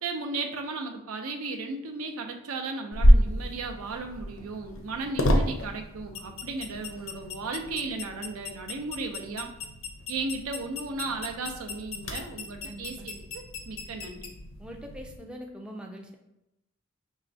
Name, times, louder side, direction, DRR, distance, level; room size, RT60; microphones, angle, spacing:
voice 1, 0.0-9.5 10.1-14.3, right 3 dB, 90° right, 4 dB, 0.6 m, -35 dB
sound 1, 2.9-15.2, equal, 70° left, 0.6 m, -29 dB
voice 2, 12.7-13.1 14.6-16.2, equal, 5° right, 2 dB, 0.3 m, -42 dB
5.5 x 3.1 x 2.6 m, 0.88 s
head